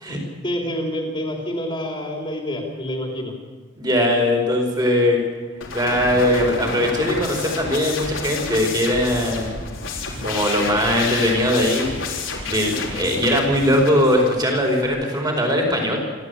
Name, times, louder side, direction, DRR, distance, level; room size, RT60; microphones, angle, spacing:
voice 1, 0.1-3.3, equal, 25° left, 0 dB, 3.6 m, -28 dB
voice 2, 3.8-5.2 5.7-9.5 10.2-11.9 12.2-16.0, left 1 dB, 20° right, 1 dB, 5.0 m, -20 dB
sound 1, 5.6-14.9, left 3 dB, 75° left, 4.0 m, -30 dB
28.0 x 13.0 x 8.4 m, 1.4 s
head